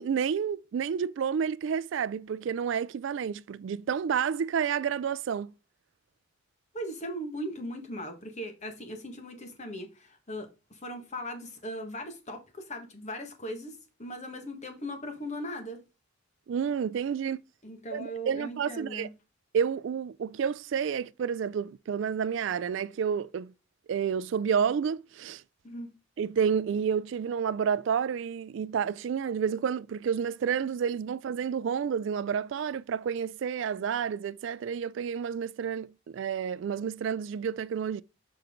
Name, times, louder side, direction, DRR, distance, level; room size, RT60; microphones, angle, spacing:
voice 1, 0.0-5.5 16.5-17.4 17.9-19.1 19.5-23.5 23.9-25.4 26.2-38.0, right 7 dB, 60° right, 0.3 m, -30 dB
voice 2, 6.7-15.8 17.6-19.1 25.6-25.9, equal, 35° left, 1.6 m, -39 dB
6.9 x 4.4 x 3.7 m
head